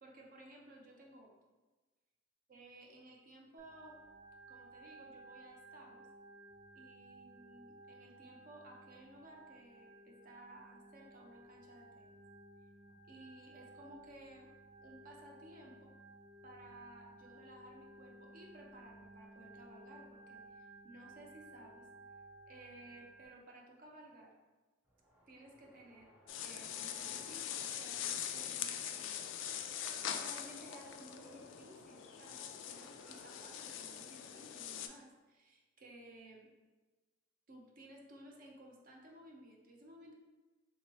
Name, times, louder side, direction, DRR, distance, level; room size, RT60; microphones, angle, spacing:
voice 1, 0.0-1.4 2.5-4.0 4.5-6.1 6.7-12.2 13.1-14.5 14.8-15.9 16.4-21.9 22.5-24.3 25.3-26.1 26.4-29.1 30.1-36.5 37.5-40.1, right 1 dB, 45° right, -1 dB, 0.6 m, -57 dB
Organ, 3.6-23.3, right 1 dB, 80° right, 1.0 m, -57 dB
Race car auto racing, 24.8-34.1, equal, 10° right, 0.6 m, -62 dB
sound 1, 26.3-34.9, left 9 dB, 70° left, 0.3 m, -43 dB
3.5 x 2.8 x 3.1 m, 1.2 s
head